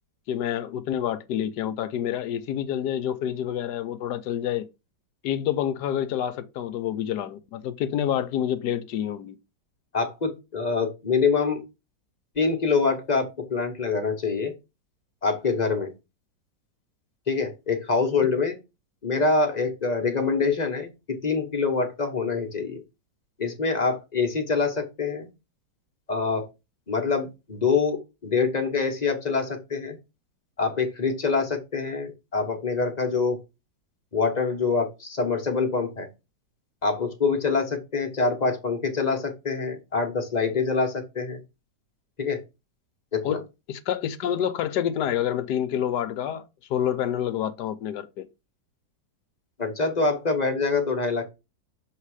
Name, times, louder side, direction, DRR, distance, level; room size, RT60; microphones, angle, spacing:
voice 1, 0.3-4.7 5.2-9.4 43.2-48.3, left 10 dB, 75° left, 1.2 m, -28 dB
voice 2, 9.9-11.6 12.4-13.2 13.5-14.5 15.2-15.9 17.3-18.5 19.0-20.9 21.2-22.8 23.4-25.3 26.1-26.5 26.9-28.0 28.2-30.0 30.6-33.4 34.1-36.1 36.8-41.4 42.2-42.4 43.1-43.4 49.6-51.2, left 4 dB, 30° left, 1.0 m, -25 dB
6.7 x 3.2 x 4.8 m
omnidirectional pair, 1.9 m